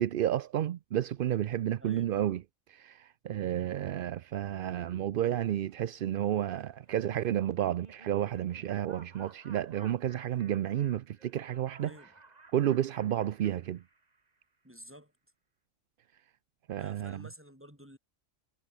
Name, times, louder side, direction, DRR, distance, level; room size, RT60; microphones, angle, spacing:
voice 1, 0.0-2.4 2.7-11.9 12.5-13.8 16.7-17.2, right 11 dB, 65° right, 0.5 m, -31 dB
voice 2, 1.8-2.1 11.8-12.1 14.6-15.1 16.7-18.0, equal, 10° right, 7.9 m, -51 dB
sound 1, 5.3-10.4, left 1 dB, 20° left, 6.4 m, -73 dB
Laughter, 6.9-14.4, right 3 dB, 30° right, 1.7 m, -56 dB
omnidirectional pair, 1.4 m